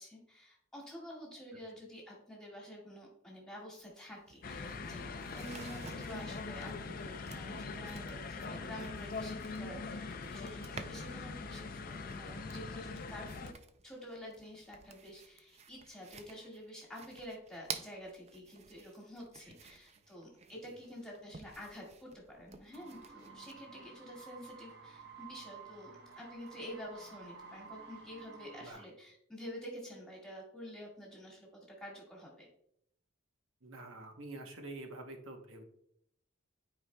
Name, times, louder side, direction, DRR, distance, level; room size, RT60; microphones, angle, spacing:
voice 1, 0.0-13.5 13.8-32.5, equal, 5° left, -3 dB, 1.8 m, -49 dB
sound 1, 3.8-3.9 4.1-11.2 11.6-23.5, right 5 dB, 30° right, 0.4 m, -52 dB
sound 2, 4.4-13.5, left 4 dB, 45° left, 0.4 m, -42 dB
voice 2, 19.4-19.8 20.6-20.8 28.6-28.9 33.6-35.6, right 2 dB, 80° right, 4 dB, 0.9 m, -48 dB
sound 3, 22.7-28.7, right 5 dB, 55° right, 1.0 m, -52 dB
10.5 x 4.8 x 2.2 m, 0.71 s
head